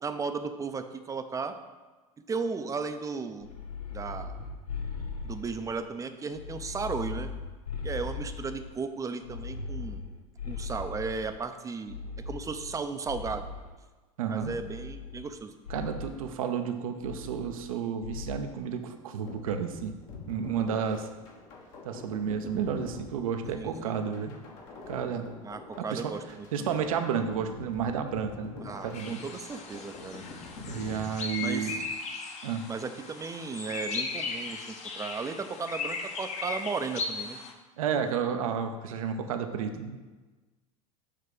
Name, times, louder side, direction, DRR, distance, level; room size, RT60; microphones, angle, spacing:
voice 1, 0.0-1.5 2.3-3.5 3.9-4.3 5.2-7.3 7.8-10.0 10.5-12.0 12.3-13.4 14.3-15.5 23.6-24.0 25.4-26.8 28.6-30.2 31.4-31.8 32.7-37.4, right 4 dB, 20° right, 8 dB, 0.5 m, -35 dB
sound 1, 3.4-5.8 6.3-8.8 9.2-11.4 11.9-13.8 14.4-15.4 15.6-16.1 17.0-17.7 18.0-18.5, left 4 dB, 90° left, 0.6 m, -39 dB
voice 2, 14.2-14.5 15.7-19.9 20.3-21.1 21.8-24.4 24.9-25.3 25.9-26.1 26.5-29.2 30.7-31.8 32.4-32.7 37.8-40.0, right 7 dB, 70° right, 7 dB, 0.6 m, -31 dB
sound 2, 19.3-31.8, left 3 dB, 65° left, 1.4 m, -45 dB
sound 3, 28.9-37.5, left 4 dB, 40° left, 0.8 m, -37 dB
6.7 x 3.2 x 5.1 m, 1.3 s
hypercardioid pair, 80°, 18 cm